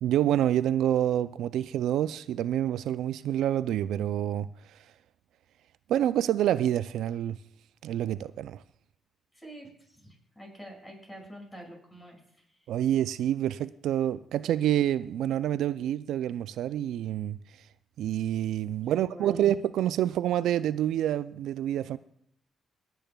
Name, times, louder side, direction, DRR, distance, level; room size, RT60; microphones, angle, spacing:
voice 1, 0.0-4.5 5.9-7.4 7.8-8.6 12.7-17.4 18.0-22.0, right 11 dB, 80° right, 0.3 m, -27 dB
voice 2, 9.3-12.2 18.9-19.4, right 1 dB, 15° left, 5.8 m, -47 dB
26.0 x 9.0 x 2.3 m
cardioid pair, 90°, 0 cm